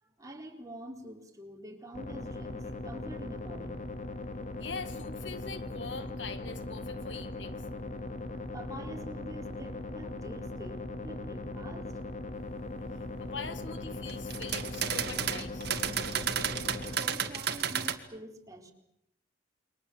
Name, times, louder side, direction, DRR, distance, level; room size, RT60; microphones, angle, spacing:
voice 1, 0.0-3.8 8.3-12.0 16.9-18.7, equal, 20° right, 2 dB, 4.0 m, -46 dB
sound 1, 1.9-17.0, left 2 dB, 45° left, 2.0 m, -39 dB
voice 2, 4.6-7.7 13.2-15.7, left 4 dB, 75° left, 11 dB, 1.6 m, -42 dB
sound 2, 14.1-17.9, right 8 dB, 60° right, 2.1 m, -32 dB
29.0 x 23.5 x 7.8 m, 0.80 s
head